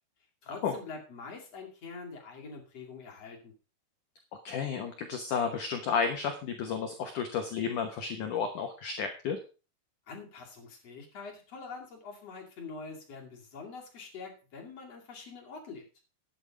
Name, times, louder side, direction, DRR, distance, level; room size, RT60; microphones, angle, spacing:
voice 1, 0.4-3.5 10.1-15.8, left 4 dB, 40° left, 0 dB, 2.8 m, -45 dB
voice 2, 4.4-9.4, left 6 dB, 70° left, 5 dB, 1.9 m, -32 dB
11.0 x 8.9 x 5.1 m, 0.34 s
omnidirectional pair, 5.4 m